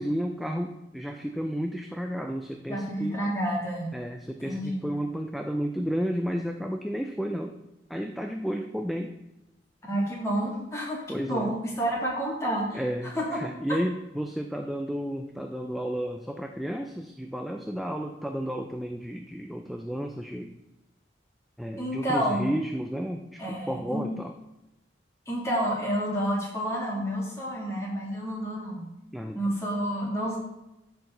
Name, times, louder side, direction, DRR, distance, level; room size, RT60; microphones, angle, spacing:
voice 1, 0.0-3.2 3.9-7.6 7.9-9.1 11.1-11.6 12.7-20.5 21.6-24.3 29.1-29.5, equal, ahead, 3 dB, 0.4 m, -32 dB
voice 2, 2.7-3.9 4.4-4.9 9.9-12.8 13.1-13.4 21.8-22.5 23.4-24.0 25.3-28.9 29.3-30.4, equal, 15° left, -5 dB, 2.6 m, -29 dB
13.0 x 4.6 x 3.9 m, 0.93 s
head